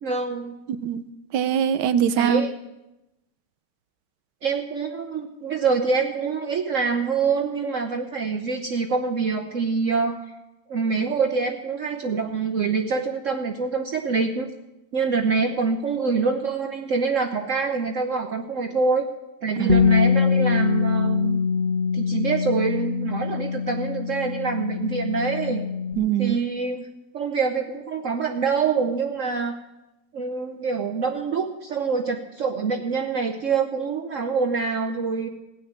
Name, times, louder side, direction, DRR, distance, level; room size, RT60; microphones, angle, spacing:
voice 1, 0.0-0.6 2.1-2.5 4.4-10.2 10.7-14.5 14.9-19.1 19.4-21.4 21.9-25.6 26.2-26.9 27.1-29.6 30.1-35.3, right 5 dB, 55° right, 3 dB, 1.1 m, -25 dB
voice 2, 0.7-1.0 1.3-2.4 19.6-19.8 26.0-26.4, right 9 dB, 85° right, 13 dB, 1.4 m, -22 dB
Bass guitar, 19.7-25.9, left 6 dB, 50° left, 0.6 m, -23 dB
18.0 x 6.5 x 8.8 m, 0.97 s
omnidirectional pair, 1.9 m